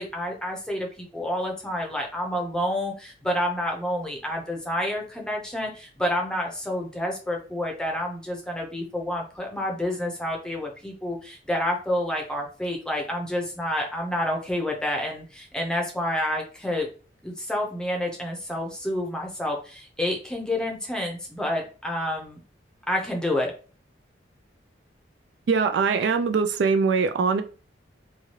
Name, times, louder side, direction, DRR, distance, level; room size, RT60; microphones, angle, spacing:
voice 1, 0.0-16.9 17.2-22.4 22.9-23.5, left 1 dB, 5° left, 0.6 m, -29 dB
voice 2, 25.5-27.4, right 5 dB, 65° right, 0.3 m, -22 dB
3.1 x 2.3 x 2.8 m
head